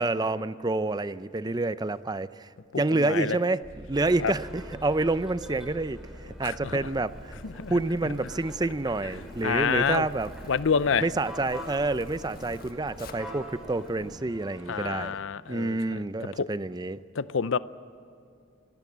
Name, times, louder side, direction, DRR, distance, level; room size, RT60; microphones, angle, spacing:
voice 1, 0.0-2.5 2.8-6.0 6.4-7.4 7.7-10.3 11.0-15.2 15.5-17.0, right 2 dB, 20° right, 14 dB, 0.5 m, -28 dB
voice 2, 2.7-3.4 4.2-4.3 6.4-6.8 7.4-7.7 9.4-10.1 10.5-11.0 14.7-15.8 16.4-16.5 17.1-17.6, left 6 dB, 70° left, 16 dB, 0.6 m, -27 dB
sound 1, 3.6-10.7, equal, 20° left, 2.3 m, -47 dB
sound 2, 3.9-15.1, equal, ahead, 4.6 m, -45 dB
Zipper (clothing), 6.6-14.2, left 2 dB, 50° left, 1.6 m, -50 dB
25.0 x 18.0 x 7.4 m, 2.6 s
head